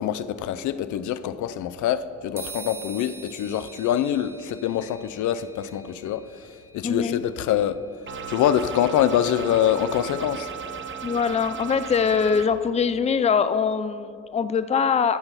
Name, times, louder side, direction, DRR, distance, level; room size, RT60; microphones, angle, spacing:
voice 1, 0.0-7.8 8.3-10.5, left 10 dB, 75° left, 0.5 m, -25 dB
sound 1, 2.4-10.0, right 4 dB, 10° right, 1.8 m, -45 dB
voice 2, 6.8-7.2 11.0-15.2, left 6 dB, 20° left, 0.5 m, -23 dB
sound 2, 8.1-12.5, right 7 dB, 40° right, 1.0 m, -36 dB
12.0 x 6.9 x 5.7 m
cardioid pair, 90°, 30 cm